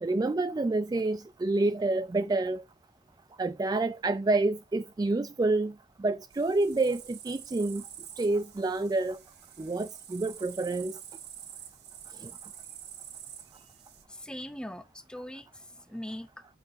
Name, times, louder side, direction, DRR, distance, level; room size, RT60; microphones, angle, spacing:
voice 1, 0.0-2.6 3.4-7.8 8.2-9.2 9.6-11.0 12.2-12.3, right 2 dB, 20° right, 0.3 m, -28 dB
sound 1, 6.3-14.0, right 9 dB, 65° right, 1.5 m, -47 dB
voice 2, 14.1-16.4, equal, 5° left, 0.8 m, -41 dB
8.8 x 5.9 x 2.7 m
head